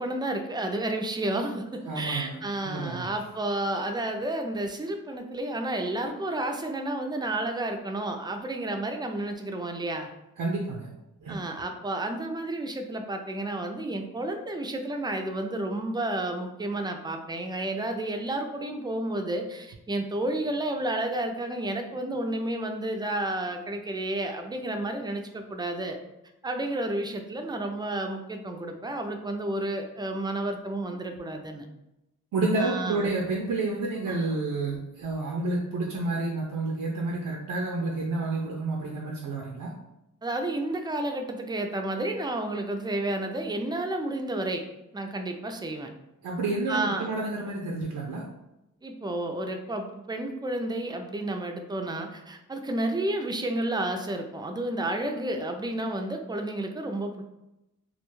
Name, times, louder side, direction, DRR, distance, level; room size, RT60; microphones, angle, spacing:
voice 1, 0.0-10.1 11.3-26.0 26.4-31.7 32.6-33.1 34.1-34.4 40.2-44.6 44.9-45.9 46.7-47.1 48.8-57.2, right 1 dB, 15° right, 4 dB, 0.3 m, -31 dB
voice 2, 1.9-2.4 2.6-3.1 10.4-10.9 11.2-11.4 32.3-39.7 46.2-48.2, right 2 dB, 85° right, -1 dB, 0.5 m, -29 dB
2.4 x 2.2 x 3.0 m, 0.90 s
wide cardioid pair, 75°, 32 cm